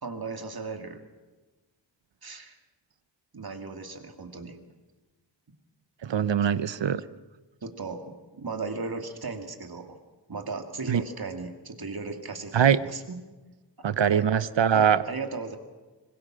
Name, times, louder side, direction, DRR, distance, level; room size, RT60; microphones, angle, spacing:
voice 1, 0.0-1.0 2.2-2.6 3.3-4.6 6.4-6.5 7.6-9.9 10.3-13.2 14.1-14.4 14.7-15.6, right 4 dB, 55° right, 5 dB, 2.5 m, -36 dB
voice 2, 6.0-7.0 10.9-11.0 12.5-12.8 13.8-15.0, right 8 dB, 80° right, 15 dB, 0.8 m, -22 dB
25.5 x 21.0 x 6.3 m, 1.2 s
wide cardioid pair, 60°, 44 cm